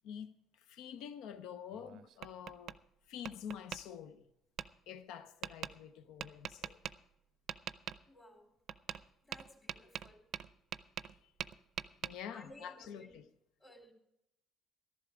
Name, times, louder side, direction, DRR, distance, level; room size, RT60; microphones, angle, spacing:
voice 1, 0.0-2.8 3.1-4.2 4.9-6.8 11.0-11.3 12.0-13.2, left 8 dB, 75° left, 0.6 m, -47 dB
Tap, 1.7-2.8 3.2-3.8 4.6-4.7 5.4-5.7 6.2-6.9 7.5-8.0 8.7-9.0 9.3-11.1 11.4-12.1, right 10 dB, 65° right, 0.5 m, -42 dB
voice 2, 8.1-8.5 9.2-10.3 12.3-13.2 13.6-13.9, left 1 dB, 25° left, 3.1 m, -57 dB
14.0 x 11.5 x 4.9 m
hypercardioid pair, 60°, 0 cm